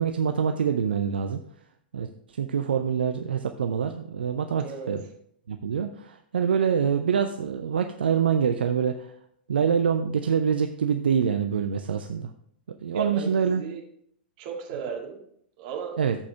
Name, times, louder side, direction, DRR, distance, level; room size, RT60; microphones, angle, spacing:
voice 1, 0.0-1.4 1.9-5.0 5.5-9.1 9.5-12.3 12.7-13.6 16.0-16.2, right 7 dB, 70° right, 7 dB, 0.6 m, -25 dB
voice 2, 4.6-4.9 12.9-13.8 14.4-15.2 15.6-16.0, right 7 dB, 50° right, 1 dB, 2.1 m, -35 dB
14.0 x 4.9 x 3.4 m, 0.68 s
figure-of-eight pair, 100°, 6 cm